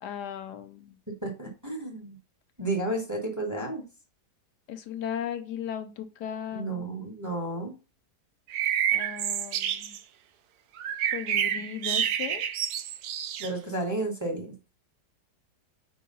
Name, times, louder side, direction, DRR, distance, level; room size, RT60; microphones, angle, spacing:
voice 1, 0.0-1.0 4.7-6.8 8.9-10.0 11.1-12.5, left 9 dB, 80° left, 8 dB, 1.3 m, -37 dB
voice 2, 1.1-2.2 2.6-3.8 6.5-7.7 13.4-14.5, right 2 dB, 10° right, 1 dB, 1.2 m, -32 dB
sound 1, 8.5-10.0 10.8-13.5, right 9 dB, 75° right, 1.1 m, -28 dB
4.7 x 3.8 x 5.3 m, 0.32 s
omnidirectional pair, 1.8 m